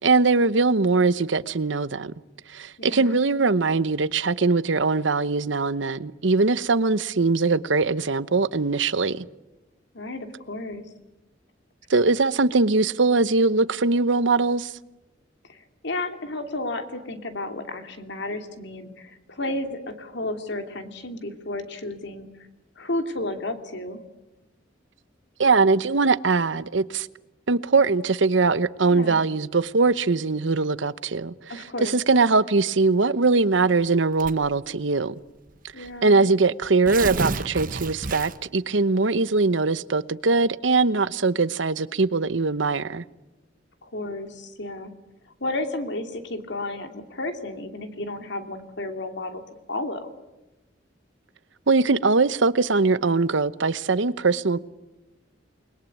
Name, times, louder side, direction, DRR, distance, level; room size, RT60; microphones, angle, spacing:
voice 1, 0.0-2.1 2.5-9.3 11.9-14.7 25.4-27.1 27.5-35.1 35.8-43.0 51.7-54.6, right 3 dB, 75° right, 0.9 m, -21 dB
voice 2, 2.8-3.2 9.9-10.8 15.5-22.3 22.8-24.0 28.8-29.2 31.5-31.9 35.7-36.2 43.8-44.9 45.4-49.4 49.7-50.1, left 2 dB, 65° left, 2.8 m, -32 dB
Tearing, 34.2-34.6 35.5-35.6 35.9-36.0 36.6-38.6, right 3 dB, 45° right, 1.1 m, -30 dB
29.0 x 21.5 x 9.4 m
head